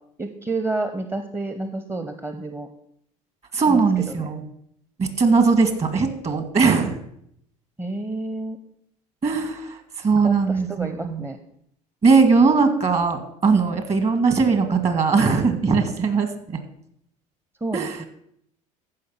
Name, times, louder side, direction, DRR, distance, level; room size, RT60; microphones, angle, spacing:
voice 1, 0.2-2.7 3.7-3.8 4.2-4.3 7.8-8.6 10.2-10.4 10.7-11.4 17.6-18.0, right 2 dB, 15° right, 8 dB, 0.8 m, -29 dB
voice 2, 3.5-4.4 5.0-7.0 9.2-11.2 12.0-16.6 17.7-18.0, right 4 dB, 40° right, 9 dB, 1.9 m, -20 dB
14.5 x 5.3 x 5.7 m, 0.71 s
hypercardioid pair, 70°, 18 cm